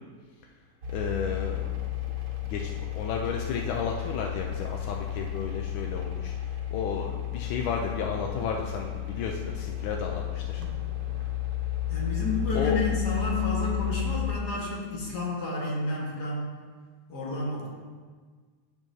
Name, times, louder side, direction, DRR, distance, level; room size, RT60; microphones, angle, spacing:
sound 1, 0.8-14.3, left 11 dB, 55° right, 1.1 m, -32 dB
voice 1, 0.9-1.9 2.4-10.6 12.5-12.8, left 5 dB, 85° left, 1 dB, 1.4 m, -33 dB
voice 2, 11.9-16.5 17.1-17.7, left 2 dB, 55° left, -4 dB, 2.1 m, -31 dB
9.6 x 7.3 x 2.7 m, 1.5 s
omnidirectional pair, 2.1 m